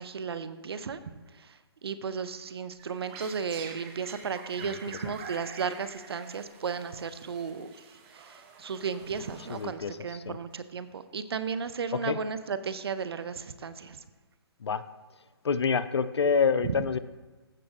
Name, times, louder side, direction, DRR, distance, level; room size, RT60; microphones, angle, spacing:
voice 1, 0.0-7.7 8.1-14.0, right 6 dB, 65° right, 12 dB, 0.8 m, -35 dB
sound 1, 2.8-10.1, right 5 dB, 25° right, 1.1 m, -47 dB
voice 2, 4.6-5.1 9.4-10.4 11.9-12.2 14.6-14.9 15.4-17.0, left 6 dB, 75° left, 15 dB, 0.6 m, -28 dB
14.5 x 6.2 x 3.6 m, 1.2 s
hypercardioid pair, 145°, 14 cm